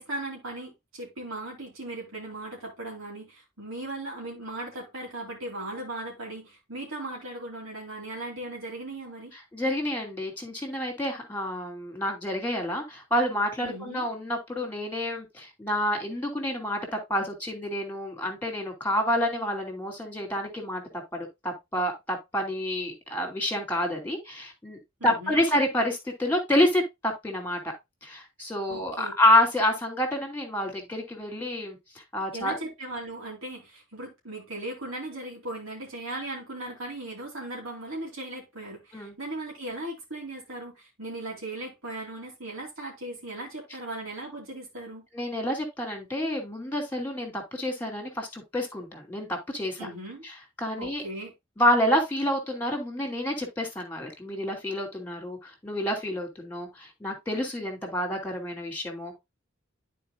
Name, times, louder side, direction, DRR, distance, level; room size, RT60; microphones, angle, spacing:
voice 1, 0.0-9.3 13.6-14.1 25.0-25.5 28.7-29.1 32.3-45.1 49.8-50.2 50.8-51.3, right 2 dB, 85° right, 3.0 m, -38 dB
voice 2, 9.5-27.7 28.0-31.8 32.1-32.6 38.9-39.1 45.1-49.9 50.2-50.3 50.6-51.0 51.6-59.2, left 1 dB, 10° left, 2.6 m, -28 dB
12.5 x 4.5 x 2.3 m
head